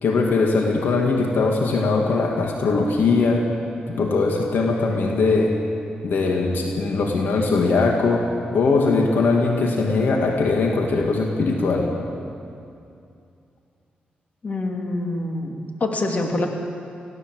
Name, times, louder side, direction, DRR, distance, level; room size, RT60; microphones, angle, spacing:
voice 1, 0.0-3.5 3.9-5.6 6.0-11.9, left 3 dB, 80° left, 1 dB, 2.1 m, -20 dB
voice 2, 14.4-16.5, left 2 dB, 50° left, 2 dB, 2.9 m, -25 dB
21.5 x 16.0 x 7.7 m, 2.5 s
cardioid pair, 75°, 3 cm